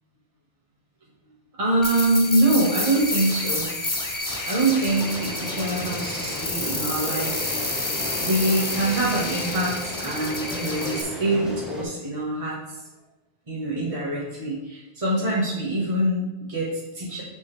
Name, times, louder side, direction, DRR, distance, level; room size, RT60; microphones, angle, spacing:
voice 1, 1.6-3.7 4.5-7.5 8.2-12.6 13.5-17.2, right 2 dB, 35° right, -6 dB, 1.6 m, -24 dB
sound 1, 1.8-11.0, left 2 dB, 20° left, 0.7 m, -29 dB
sound 2, 4.9-11.8, equal, ahead, 1.3 m, -35 dB
6.7 x 5.4 x 3.4 m, 1.0 s
omnidirectional pair, 1.1 m